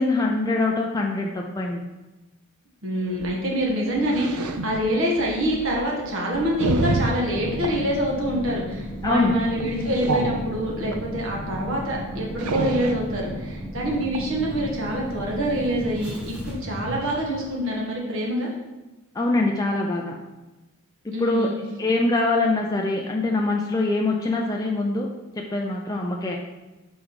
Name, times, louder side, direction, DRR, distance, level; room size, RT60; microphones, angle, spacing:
voice 1, 0.0-1.9 9.0-9.3 19.1-20.2 21.0-21.5 21.8-25.1 25.4-26.4, left 2 dB, 15° left, 0 dB, 0.4 m, -24 dB
voice 2, 2.8-18.5 21.1-21.5, equal, 60° right, -2 dB, 1.5 m, -26 dB
sound 1, 3.0-7.8 8.2-8.5 8.8-9.1 9.6-11.1 11.6-11.7 11.9-13.1 13.9-14.3 15.4-15.6 16.0-16.1 16.4-16.5 16.7-17.2 17.6-17.8, right 3 dB, 85° right, 0.6 m, -29 dB
sound 2, 7.3-17.8 18.1-18.2, equal, 5° right, 1.0 m, -35 dB
5.4 x 4.9 x 4.7 m, 1.1 s
head